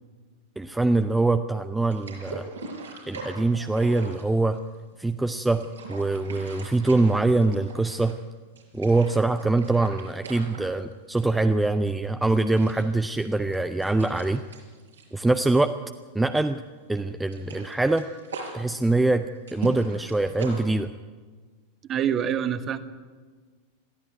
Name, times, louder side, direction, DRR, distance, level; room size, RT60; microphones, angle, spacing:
voice 1, 0.6-2.5 3.1-4.6 5.0-8.2 8.7-14.4 15.1-15.7 16.1-16.6 16.9-18.1 18.5-19.3 19.5-20.9, right 2 dB, 5° right, 10 dB, 0.6 m, -23 dB
sound 1, 1.9-5.0 5.4-8.3 8.6-11.4 11.7-11.9 12.3-16.1 16.3-16.5 16.9-20.6, right 4 dB, 70° right, 5.3 m, -41 dB
voice 2, 21.9-22.8, right 9 dB, 30° right, 11 dB, 1.4 m, -25 dB
22.0 x 14.5 x 9.4 m, 1.5 s
figure-of-eight pair, 90°, 0 cm